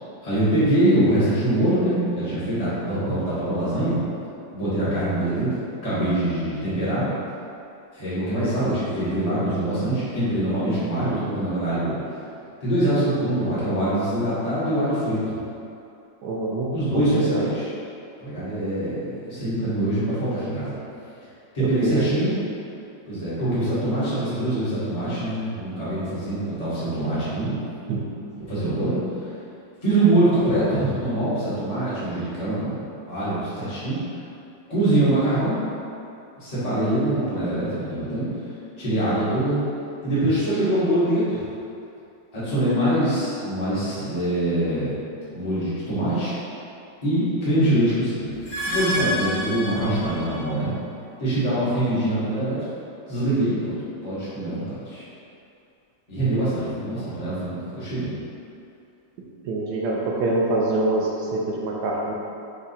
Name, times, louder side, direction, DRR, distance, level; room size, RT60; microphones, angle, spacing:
voice 1, 0.2-4.0 4.5-5.6 5.8-7.0 7.9-12.0 12.6-15.4 16.7-17.7 18.2-20.7 21.5-22.3 23.1-27.5 28.5-29.0 29.8-34.0 34.7-35.6 36.4-38.3 38.8-39.6 40.0-41.4 42.3-44.9 45.3-46.3 47.0-48.3 48.6-50.7 51.2-52.6 53.1-53.7 54.0-55.0 56.1-58.1, right 1 dB, 20° left, -12 dB, 1.3 m, -24 dB
voice 2, 16.2-17.5 21.8-22.0 27.5-27.6 27.9-28.0 59.4-62.1, right 2 dB, 70° right, -3 dB, 1.0 m, -25 dB
sound 1, 48.3-50.6, equal, 50° left, 1.2 m, -29 dB
4.9 x 2.3 x 4.1 m, 2.6 s
omnidirectional pair, 2.1 m